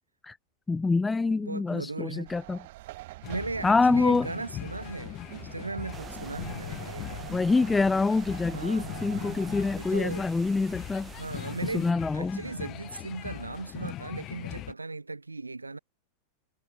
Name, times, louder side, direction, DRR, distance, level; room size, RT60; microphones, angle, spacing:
voice 1, 0.7-2.6 3.6-4.3 7.3-11.1 11.6-12.4, left 3 dB, 10° left, 0.3 m, -26 dB
voice 2, 1.4-2.3 3.2-7.4 8.5-9.4 9.8-10.3 11.1-11.9 12.1-15.8, right 3 dB, 80° right, 3.2 m, -37 dB
sound 1, 2.3-9.8, right 19 dB, 50° right, 1.7 m, -46 dB
sound 2, 3.2-14.7, left 14 dB, 35° left, 1.4 m, -40 dB
sound 3, 5.9-11.9, right 8 dB, 20° right, 2.1 m, -47 dB
figure-of-eight pair, 90°, 0 cm